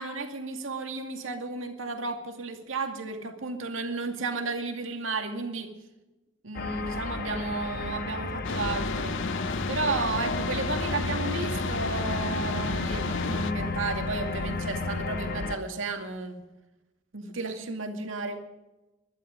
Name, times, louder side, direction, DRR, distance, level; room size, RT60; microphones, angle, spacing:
voice 1, 0.0-5.7 6.4-9.2 9.7-16.4 17.1-18.4, right 3 dB, 75° right, 5 dB, 2.3 m, -33 dB
sound 1, 6.5-15.6, left 3 dB, 50° left, 1.4 m, -32 dB
sound 2, 8.4-13.5, left 4 dB, 65° left, 0.8 m, -33 dB
20.5 x 12.0 x 5.2 m, 1.1 s
head